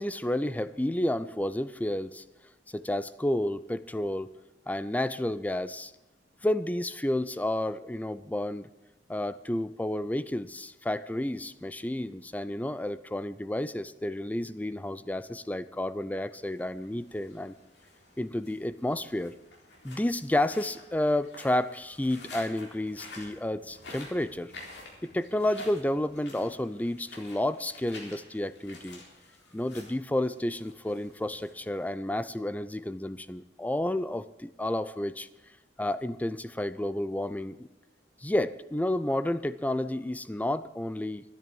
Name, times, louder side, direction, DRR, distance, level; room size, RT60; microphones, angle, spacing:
voice 1, 0.0-2.2 2.7-4.3 4.7-5.9 6.4-8.7 9.1-17.5 18.2-19.3 19.8-24.5 25.0-29.0 29.5-35.3 35.8-37.7 38.2-41.2, left 1 dB, 10° left, 15 dB, 0.4 m, -31 dB
sound 1, 16.4-32.1, left 2 dB, 70° left, 3.9 m, -50 dB
12.5 x 10.5 x 7.7 m, 1.0 s
head